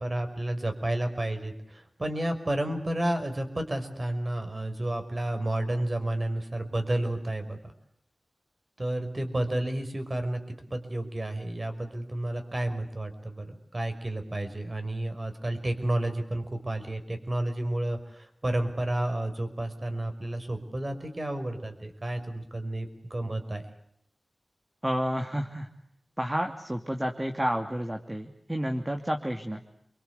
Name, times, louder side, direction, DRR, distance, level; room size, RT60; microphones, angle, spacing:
voice 1, 0.0-7.6 8.8-23.6, right 1 dB, 40° right, 6 dB, 5.6 m, -31 dB
voice 2, 24.8-25.7 26.2-29.6, equal, 15° right, 4 dB, 2.7 m, -30 dB
29.5 x 24.0 x 8.3 m, 0.72 s
wide cardioid pair, 60°, 0 cm